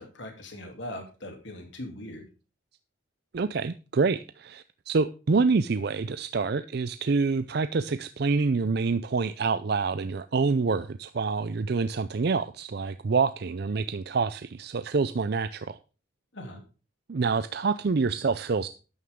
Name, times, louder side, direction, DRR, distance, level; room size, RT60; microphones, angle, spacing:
voice 1, 0.0-2.2 16.3-16.6, left 1 dB, 65° left, 3.0 m, -40 dB
voice 2, 3.3-15.8 17.1-18.7, right 4 dB, 50° right, 0.4 m, -27 dB
12.5 x 9.6 x 3.7 m
head